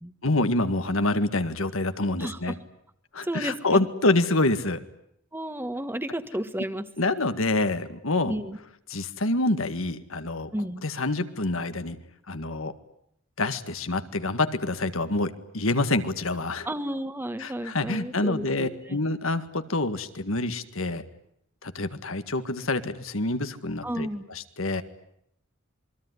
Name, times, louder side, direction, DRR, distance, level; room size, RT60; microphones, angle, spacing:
voice 1, 0.2-2.5 3.1-4.8 7.0-8.4 8.9-10.5 10.8-12.0 12.3-12.7 13.4-16.7 17.4-21.0 21.6-24.8, left 2 dB, 80° left, 10 dB, 1.9 m, -27 dB
voice 2, 2.2-2.6 3.2-3.9 5.3-6.9 8.3-8.6 10.5-10.8 16.6-19.0 23.8-24.2, right 1 dB, 10° right, 10 dB, 1.5 m, -32 dB
27.5 x 22.0 x 9.7 m, 0.75 s
head